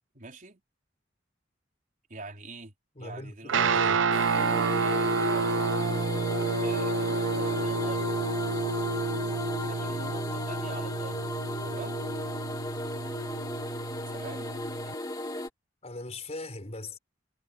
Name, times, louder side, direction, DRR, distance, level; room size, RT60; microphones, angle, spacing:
voice 1, 0.1-0.6 2.1-2.7 3.0-3.7 4.7-5.5 6.6-8.1 9.1-11.3 11.6-12.0 14.1-14.6, right 3 dB, 45° right, 4.0 m, -44 dB
voice 2, 2.9-4.0 15.8-17.0, left 2 dB, 35° left, 4.5 m, -40 dB
Guitar, 3.5-14.9, right 4 dB, 85° right, 0.7 m, -29 dB
sound 1, 4.1-15.5, left 2 dB, 20° left, 1.7 m, -36 dB
head